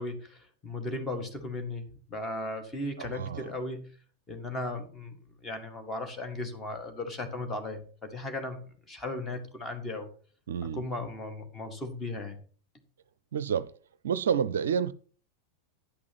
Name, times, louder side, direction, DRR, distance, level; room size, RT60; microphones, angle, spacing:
voice 1, 0.0-3.9 4.3-5.2 5.4-8.6 8.9-10.1 10.7-12.4, left 2 dB, 20° left, 2.0 m, -36 dB
voice 2, 3.0-3.5 10.5-10.8 13.3-13.7 14.0-14.9, right 7 dB, 65° right, 0.4 m, -29 dB
10.0 x 6.1 x 5.9 m
figure-of-eight pair, 90°, 0 cm